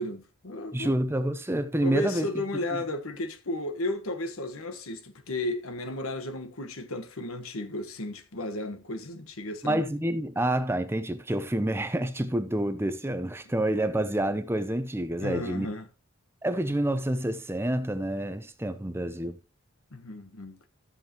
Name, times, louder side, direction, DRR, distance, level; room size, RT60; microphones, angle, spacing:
voice 1, 0.0-0.9 1.8-9.8 15.2-15.9 19.9-20.6, left 1 dB, 90° left, 1.4 m, -34 dB
voice 2, 0.7-2.3 9.6-15.7 16.4-19.4, right 1 dB, 10° right, 0.6 m, -28 dB
13.0 x 7.4 x 3.0 m
head